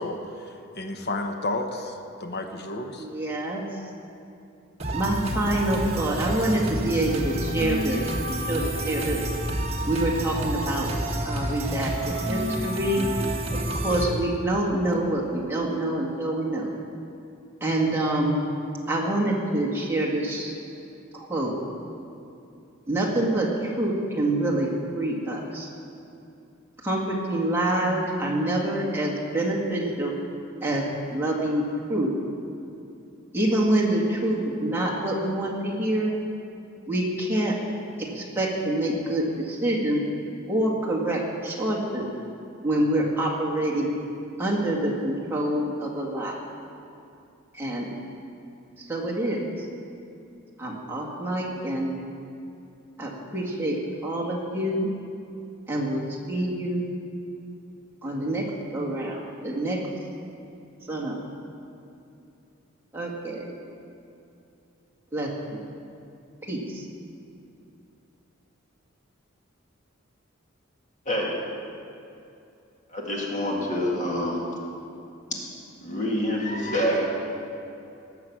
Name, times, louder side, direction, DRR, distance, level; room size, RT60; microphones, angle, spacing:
voice 1, 0.0-3.1, left 2 dB, 50° left, 5 dB, 1.0 m, -32 dB
voice 2, 3.0-3.7 4.9-8.1 8.5-9.2 9.9-10.9 11.3-13.1 13.5-16.7 17.6-18.4 18.9-20.5 21.1-21.6 22.9-25.7 26.8-30.2 30.6-32.1 33.3-36.2 36.9-37.6 38.0-40.0 40.5-42.1 42.6-44.0 44.4-46.4 47.5-47.9 48.8-49.7 50.6-52.0 53.0-54.9 55.7-56.9 58.0-59.8 60.9-61.2 62.9-63.5 65.1-65.6 66.5-66.9, right 1 dB, 10° right, -4 dB, 1.9 m, -26 dB
sound 1, 4.8-14.1, right 1 dB, 30° right, 1.5 m, -29 dB
voice 3, 72.9-74.5 75.8-77.1, equal, 35° left, -3 dB, 2.0 m, -26 dB
19.0 x 7.0 x 6.0 m, 2.7 s
head